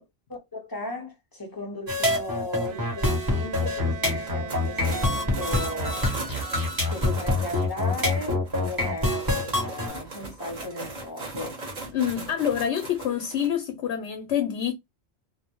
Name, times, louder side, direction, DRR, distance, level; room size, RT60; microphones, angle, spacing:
voice 1, 0.3-6.1 6.9-11.6, left 2 dB, 25° left, 0.6 m, -36 dB
sound 1, 1.9-9.9, left 2 dB, 20° right, 0.8 m, -26 dB
Bowed string instrument, 2.6-6.7, right 3 dB, 65° right, 0.8 m, -40 dB
sound 2, 4.3-13.5, right 2 dB, 45° right, 0.9 m, -39 dB
voice 2, 11.9-14.7, left 9 dB, 80° left, 0.9 m, -26 dB
2.3 x 2.0 x 2.9 m
omnidirectional pair, 1.2 m